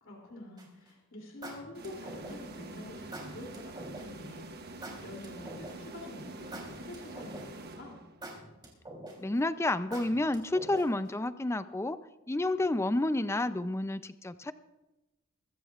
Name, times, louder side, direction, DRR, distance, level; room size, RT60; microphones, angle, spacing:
voice 1, 0.0-4.5 5.0-8.0, left 1 dB, 70° left, -1 dB, 2.9 m, -47 dB
sound 1, 0.6-0.9 1.4-2.6 3.1-4.0 4.8-6.0 6.5-7.7 8.2-9.4 9.9-11.1, right 1 dB, 20° right, 3.5 m, -44 dB
sound 2, 1.7-8.4, right 2 dB, 50° right, 1.2 m, -46 dB
voice 2, 9.2-12.0 12.3-14.5, left 2 dB, 15° left, 13 dB, 0.5 m, -30 dB
22.0 x 15.0 x 2.5 m, 1.0 s
head